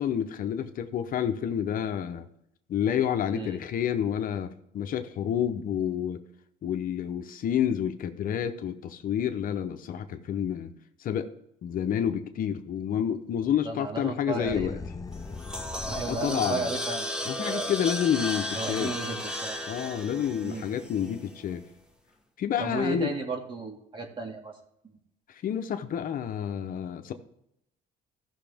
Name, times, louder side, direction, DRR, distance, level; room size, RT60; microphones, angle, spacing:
voice 1, 0.0-2.3 2.7-6.2 6.6-10.7 11.0-11.3 11.6-14.8 16.1-16.7 17.2-18.9 19.7-21.6 22.4-23.1 25.3-27.1, left 9 dB, 55° left, 0.8 m, -29 dB
voice 2, 13.6-14.7 15.9-17.7 18.5-19.6 20.4-20.7 22.6-24.5, right 3 dB, 30° right, 2.1 m, -34 dB
sound 1, 14.4-16.6, left 4 dB, 20° left, 0.5 m, -39 dB
sound 2, 15.1-21.4, left 1 dB, 5° right, 1.1 m, -35 dB
14.5 x 6.1 x 3.5 m
cardioid pair, 110°, 17 cm